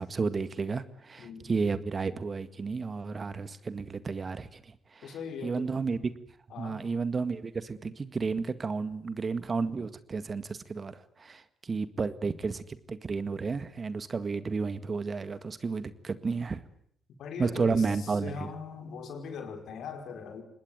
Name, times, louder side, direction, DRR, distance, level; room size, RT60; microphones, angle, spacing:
voice 1, 0.0-4.6 5.0-5.1 5.4-6.0 6.6-16.6 17.4-18.5, right 4 dB, 40° right, 13 dB, 1.9 m, -32 dB
voice 2, 1.2-1.5 5.0-5.7 6.5-6.9 17.2-20.4, left 5 dB, 70° left, 5 dB, 5.1 m, -40 dB
25.5 x 20.0 x 9.2 m, 0.66 s
supercardioid pair, 55°, 0 cm